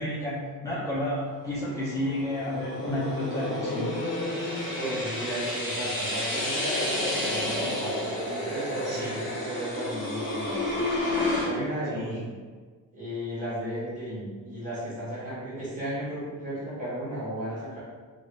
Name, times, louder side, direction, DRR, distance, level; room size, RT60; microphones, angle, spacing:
voice 1, 0.0-4.0 8.7-9.2 11.9-12.2, left 1 dB, 10° left, -11 dB, 0.6 m, -31 dB
sound 1, 1.4-11.5, left 1 dB, 35° left, 1.0 m, -31 dB
voice 2, 4.8-10.8 11.4-12.3 12.9-17.8, right 1 dB, 20° right, -10 dB, 1.5 m, -34 dB
2.8 x 2.6 x 3.0 m, 1.5 s
cardioid pair, 140°, 35 cm